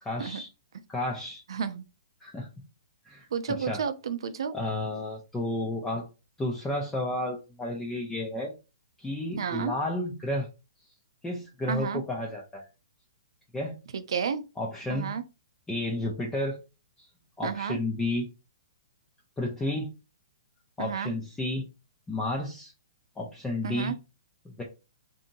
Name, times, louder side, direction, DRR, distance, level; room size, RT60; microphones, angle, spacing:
voice 1, 0.0-0.5 0.9-1.4 2.2-2.5 3.0-3.8 4.5-6.1 6.4-8.5 9.0-10.5 11.2-12.6 13.5-13.7 14.6-15.1 15.7-16.6 17.0-17.1 17.4-18.3 19.4-19.9 20.8-21.7 22.1-22.7 23.2-23.9 24.4-24.6, left 1 dB, 10° left, 0.5 m, -32 dB
voice 2, 1.5-1.8 3.3-4.6 9.4-9.7 11.7-12.0 14.1-14.4 14.9-15.2 17.4-17.8 20.8-21.1 23.6-24.0, right 6 dB, 70° right, 0.5 m, -31 dB
2.7 x 2.7 x 2.6 m
hypercardioid pair, 160°, 3 cm